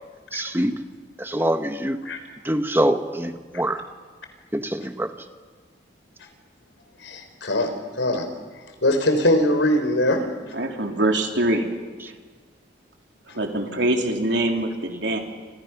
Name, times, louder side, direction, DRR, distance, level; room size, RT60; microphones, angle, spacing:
voice 1, 0.3-0.7 1.2-2.0 2.4-3.8 4.5-5.1, right 1 dB, 10° right, 8 dB, 1.1 m, -24 dB
voice 2, 7.0-8.3 8.8-10.3, left 1 dB, 85° left, 7 dB, 4.1 m, -21 dB
voice 3, 10.5-11.7 12.1-12.2 13.3-15.2, right 1 dB, 70° right, 2 dB, 3.4 m, -23 dB
29.5 x 27.5 x 6.0 m, 1.4 s
head